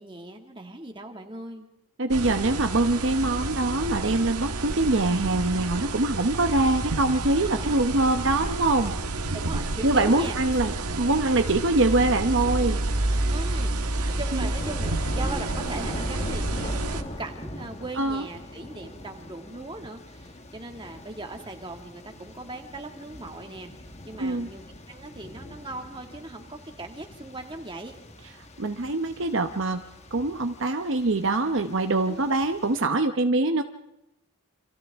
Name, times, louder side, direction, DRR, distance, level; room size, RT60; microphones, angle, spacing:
voice 1, 0.0-1.7 7.6-7.7 9.3-10.6 13.3-23.7 24.1-27.9 32.1-32.3, right 2 dB, 20° right, 4 dB, 2.1 m, -39 dB
voice 2, 2.0-8.9 9.8-12.8 14.0-14.4 18.0-18.2 24.2-24.5 28.6-29.8 30.1-33.6, right 2 dB, 55° right, 7 dB, 0.9 m, -24 dB
sound 1, 2.1-17.0, right 2 dB, 90° right, 1.6 m, -29 dB
sound 2, 13.0-32.9, left 1 dB, 30° left, 1.4 m, -42 dB
29.5 x 26.5 x 3.6 m, 0.87 s
head